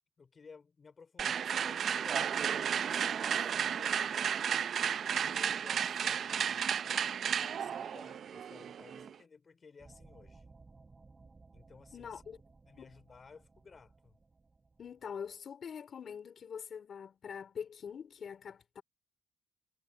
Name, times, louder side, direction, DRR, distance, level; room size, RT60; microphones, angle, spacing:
voice 1, 0.2-4.0 4.8-6.7 7.4-10.5 11.5-12.2 12.7-14.2, left 5 dB, 40° left, 3.4 m, -57 dB
sound 1, 1.2-9.1, right 8 dB, 60° right, 0.7 m, -33 dB
sound 2, 9.8-15.4, right 3 dB, 25° right, 6.0 m, -60 dB
voice 2, 11.9-12.4 12.8-13.0 14.8-18.8, left 7 dB, 55° left, 3.3 m, -44 dB
cardioid pair, 90°, 0 cm